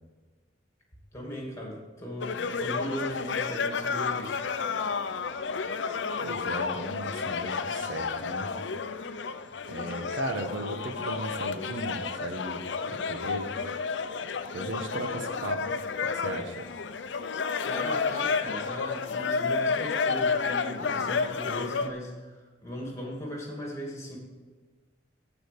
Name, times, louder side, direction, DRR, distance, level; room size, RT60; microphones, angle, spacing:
voice 1, 1.1-4.4 17.6-24.2, equal, 15° left, -2 dB, 2.6 m, -38 dB
sound 1, 2.2-21.9, left 5 dB, 65° left, 0.5 m, -31 dB
voice 2, 6.2-8.5 9.7-13.5 14.5-15.6 16.1-16.7, right 1 dB, 80° right, 5 dB, 1.2 m, -36 dB
15.0 x 5.1 x 5.2 m, 1.3 s
head